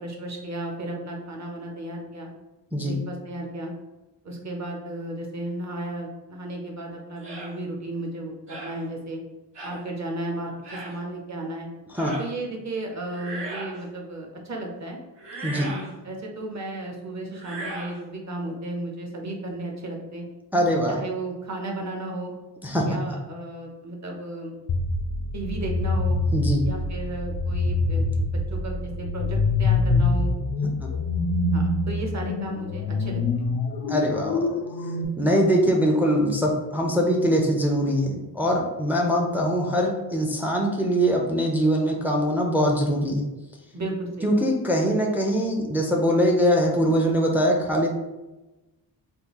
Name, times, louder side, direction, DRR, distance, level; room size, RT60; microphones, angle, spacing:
voice 1, 0.0-2.3 2.8-3.7 4.2-9.2 9.6-11.7 12.2-15.0 15.6-20.3 20.9-22.3 22.8-24.5 25.3-26.2 26.6-30.3 31.5-33.5 43.7-44.5, right 1 dB, 40° right, 1 dB, 0.7 m, -34 dB
sound 1, 7.2-7.5 8.5-8.8 9.5-9.8 10.6-10.9 11.9-12.3 13.1-13.8 15.2-15.9 17.3-18.0, right 2 dB, 80° right, 1.3 m, -37 dB
voice 2, 20.5-21.0 22.6-23.0 26.3-26.6 30.8-30.9 33.9-34.5 35.2-43.3 44.2-47.9, equal, 5° right, 0 dB, 0.4 m, -22 dB
sound 2, 24.7-35.0, left 3 dB, 60° left, 0.5 m, -25 dB
3.6 x 2.3 x 2.9 m, 1.0 s
wide cardioid pair, 105°, 42 cm